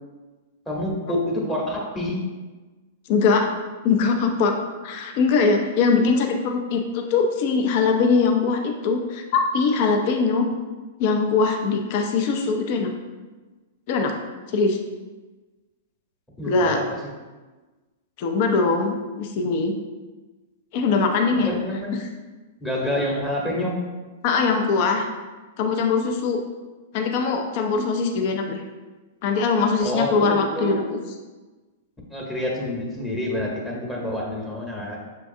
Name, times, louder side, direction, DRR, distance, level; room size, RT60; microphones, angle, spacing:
voice 1, 0.7-2.2 16.4-16.9 21.4-22.0 22.6-23.8 29.8-30.8 32.1-35.0, left 1 dB, 10° left, -4 dB, 1.0 m, -27 dB
voice 2, 3.1-3.5 3.8-4.6 4.8-10.5 11.0-12.9 13.9-14.1 14.5-14.8 16.5-16.8 18.2-19.7 20.7-21.5 24.2-25.1 25.6-26.4 26.9-28.6 29.2-31.0, left 4 dB, 50° left, 3 dB, 0.5 m, -21 dB
6.2 x 2.3 x 2.6 m, 1.2 s
hypercardioid pair, 115°, 0 cm